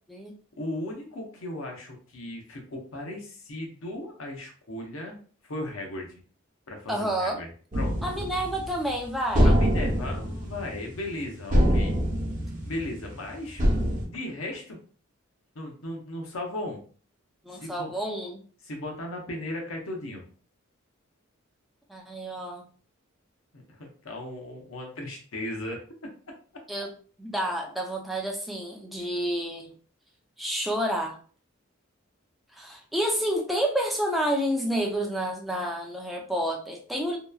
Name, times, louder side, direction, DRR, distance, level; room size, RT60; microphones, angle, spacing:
voice 1, 0.6-5.2 5.4-6.2 6.7-7.9 9.4-12.0 12.6-13.6 14.0-14.8 15.5-16.8 17.5-17.9 18.6-20.2 23.5-25.8, left 1 dB, 85° left, 1 dB, 0.7 m, -36 dB
voice 2, 6.9-7.4 8.0-9.5 17.4-18.4 21.9-22.7 26.7-26.9 27.2-29.7 30.4-31.2 32.5-37.2, right 1 dB, ahead, -1 dB, 0.4 m, -29 dB
sound 1, 7.7-8.9 9.3-11.2 11.5-13.2 13.6-14.1, equal, 40° right, 0.7 m, -24 dB
2.8 x 2.2 x 2.2 m, 0.42 s
head